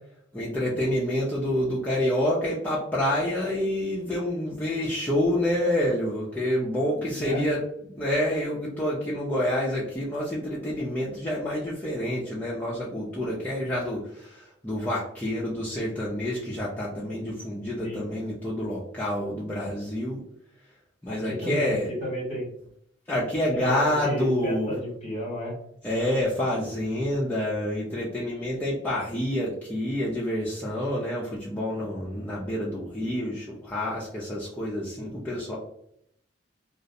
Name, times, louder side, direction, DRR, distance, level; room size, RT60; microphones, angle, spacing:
voice 1, 0.3-7.6 7.9-20.2 21.0-21.9 23.1-24.7 25.8-35.6, left 1 dB, 10° left, -8 dB, 0.4 m, -28 dB
voice 2, 21.1-22.5 23.5-25.6, equal, 35° left, -2 dB, 0.9 m, -32 dB
2.4 x 2.0 x 2.6 m, 0.72 s
head